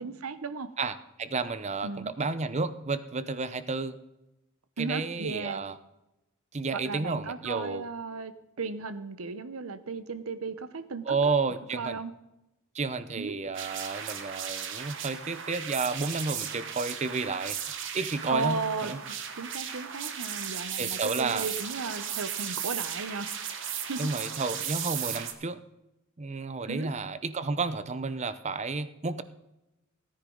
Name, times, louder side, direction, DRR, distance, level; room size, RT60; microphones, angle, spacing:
voice 1, 0.0-0.7 1.8-2.1 4.8-5.7 6.8-11.4 11.7-12.1 13.2-13.3 18.3-23.3 23.9-24.1 26.7-26.9, right 4 dB, 85° right, 12 dB, 0.8 m, -35 dB
voice 2, 0.8-4.0 4.8-5.7 6.5-7.8 11.1-12.0 12.7-17.6 17.9-19.0 20.8-21.5 24.0-25.6 26.2-29.2, right 4 dB, 35° right, 13 dB, 0.6 m, -31 dB
sound 1, 13.5-25.3, right 8 dB, 60° right, 1.2 m, -36 dB
17.0 x 9.9 x 3.9 m, 0.95 s
head